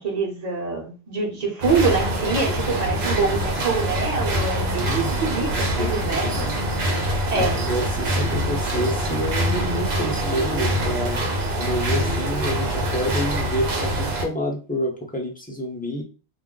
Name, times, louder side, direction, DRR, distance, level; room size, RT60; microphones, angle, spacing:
voice 1, 0.0-6.4 7.3-7.5, right 4 dB, 40° right, 0 dB, 0.9 m, -25 dB
sound 1, 1.6-14.2, right 1 dB, 75° right, 1.0 m, -24 dB
voice 2, 2.4-3.1 4.7-5.1 5.6-6.6 7.3-11.2 11.5-16.0, equal, 10° left, -1 dB, 0.5 m, -29 dB
2.4 x 2.1 x 3.7 m, 0.35 s
omnidirectional pair, 1.1 m